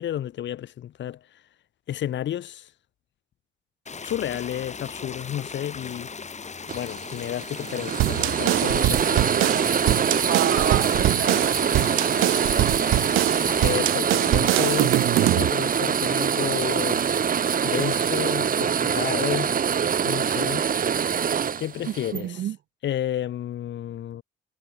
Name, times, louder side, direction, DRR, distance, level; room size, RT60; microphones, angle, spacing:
voice 1, 0.0-1.4 1.9-2.7 4.0-6.1 6.7-9.2 13.6-17.0 17.6-19.5 20.0-20.6 21.6-22.4 22.8-24.2, left 11 dB, 65° left, 1.6 m, -31 dB
sound 1, 3.8-13.8, left 5 dB, 35° left, 7.2 m, -38 dB
sound 2, 6.7-22.2, right 7 dB, 45° right, 1.4 m, -24 dB
sound 3, 8.0-15.5, right 17 dB, 85° right, 0.6 m, -24 dB
voice 2, 10.1-12.2 21.9-22.6, right 11 dB, 65° right, 1.2 m, -30 dB
cardioid pair, 90°, 20 cm